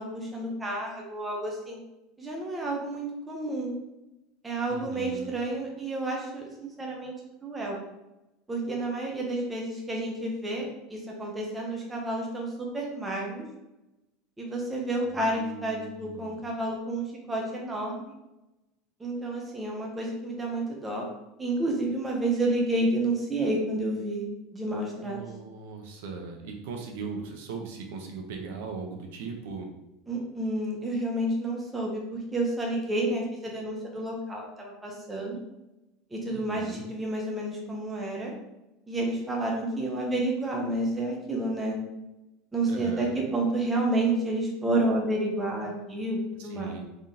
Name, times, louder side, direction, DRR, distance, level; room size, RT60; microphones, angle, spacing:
voice 1, 0.0-1.8 2.2-3.7 4.4-7.1 7.4-7.8 8.5-13.4 14.4-18.1 19.0-21.1 21.4-24.3 24.5-25.2 30.1-35.4 36.1-38.3 38.9-41.8 42.5-46.8, right 2 dB, 10° right, -1 dB, 0.6 m, -30 dB
voice 2, 4.7-5.3 15.0-16.5 25.0-29.7 36.3-36.8 42.6-43.1 46.4-46.8, right 5 dB, 75° right, 3 dB, 0.8 m, -39 dB
3.5 x 2.9 x 3.7 m, 0.95 s
cardioid pair, 175°, 0 cm